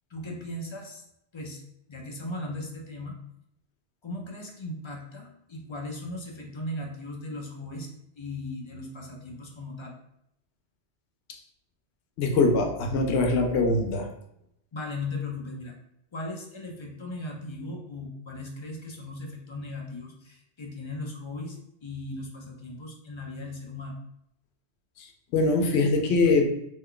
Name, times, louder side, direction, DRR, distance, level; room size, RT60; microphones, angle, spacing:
voice 1, 0.1-1.0 1.3-1.6 1.9-3.2 4.0-7.9 8.2-9.9 14.7-15.8 16.1-24.0, left 2 dB, 45° left, 0 dB, 0.4 m, -37 dB
voice 2, 12.2-14.1 25.3-26.5, left 3 dB, 80° left, 3 dB, 0.9 m, -22 dB
3.0 x 2.2 x 3.6 m, 0.77 s
omnidirectional pair, 1.1 m